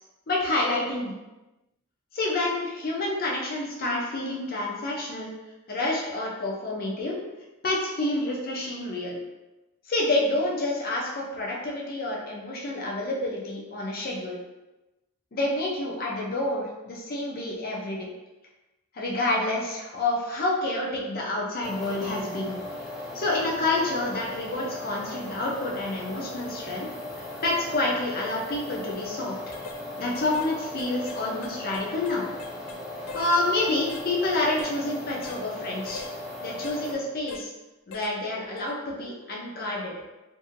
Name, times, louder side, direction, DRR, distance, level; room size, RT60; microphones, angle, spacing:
voice 1, 0.3-1.1 2.1-5.3 5.7-7.2 7.6-9.2 9.9-14.4 15.3-18.1 18.9-22.6 23.1-26.9 27.2-29.4 30.0-32.3 33.1-36.0 36.4-37.5 37.9-39.9, left 2 dB, 40° left, -3 dB, 0.6 m, -28 dB
sound 1, 21.6-36.9, left 1 dB, ahead, 0.5 m, -38 dB
sound 2, 29.0-29.1 29.5-29.8 30.2-30.5 30.8-32.8 33.1-33.4 33.9-34.1 34.6-34.8 35.2-35.4 35.9-36.1 36.6-36.8 37.3-37.5 37.9-38.2 38.6-38.7, left 5 dB, 85° left, 0.3 m, -42 dB
2.7 x 2.6 x 2.6 m, 1.0 s
head